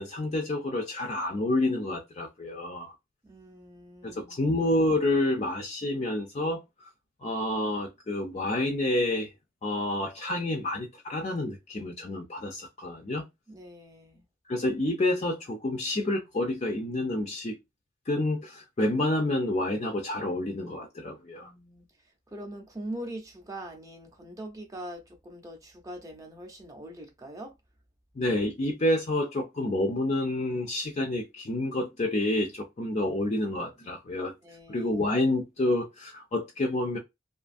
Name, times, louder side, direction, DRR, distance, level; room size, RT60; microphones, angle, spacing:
voice 1, 0.0-2.9 4.0-6.6 7.2-9.3 9.6-13.2 14.5-17.6 18.1-21.5 28.2-34.3 34.7-37.0, left 1 dB, 35° left, 0.4 m, -28 dB
voice 2, 3.2-4.4 13.5-14.2 21.4-27.5 34.4-34.9, right 1 dB, 20° right, 0.6 m, -42 dB
2.7 x 2.4 x 2.5 m
head